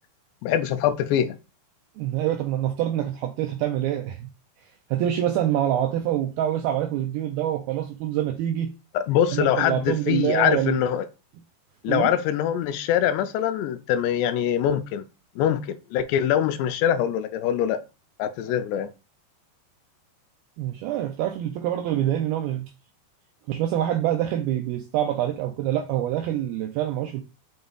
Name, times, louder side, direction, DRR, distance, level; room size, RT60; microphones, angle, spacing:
voice 1, 0.4-1.4 8.9-11.0 11.8-15.0 15.4-17.8 18.2-18.9, left 10 dB, 85° left, 2.7 m, -23 dB
voice 2, 2.0-4.3 4.6-8.7 9.3-10.8 11.9-12.1 20.6-22.7 23.5-27.2, right 11 dB, 90° right, 2.1 m, -26 dB
6.7 x 6.4 x 2.4 m
omnidirectional pair, 5.0 m